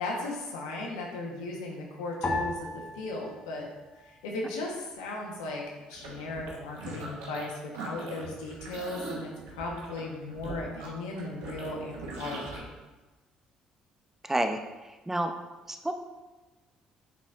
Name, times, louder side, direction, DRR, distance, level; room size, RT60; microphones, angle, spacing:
voice 1, 0.0-3.6 4.2-5.6 5.9-7.5 7.8-12.7, left 2 dB, 90° left, -1 dB, 1.1 m, -36 dB
sound 1, 2.2-4.8 5.0-5.9 6.5-7.0, left 2 dB, 45° left, 1.2 m, -37 dB
sound 2, 5.9-7.5 7.7-12.6, right 3 dB, 80° right, 1.2 m, -41 dB
voice 2, 14.2-14.6 14.8-15.3 15.7-15.9, right 1 dB, 15° right, 6 dB, 0.7 m, -29 dB
9.0 x 4.1 x 2.5 m, 1.2 s
hypercardioid pair, 60°, 3 cm